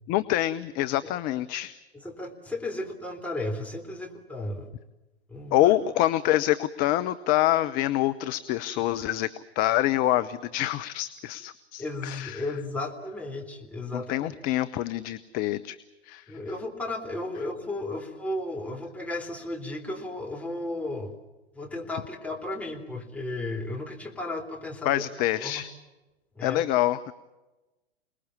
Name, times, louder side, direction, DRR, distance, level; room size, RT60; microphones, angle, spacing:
voice 1, 0.1-1.7 5.5-9.3 9.6-12.4 13.9-15.8 16.0-16.2 24.8-25.7 26.4-27.0, left 14 dB, 25° left, 11 dB, 0.8 m, -26 dB
voice 2, 1.9-4.7 5.3-5.7 11.8-14.3 16.3-21.1 21.5-25.0 25.4-25.6 26.4-26.6, left 2 dB, 5° left, 1 dB, 3.5 m, -34 dB
28.5 x 20.0 x 7.2 m, 1.1 s
figure-of-eight pair, 105°, 33 cm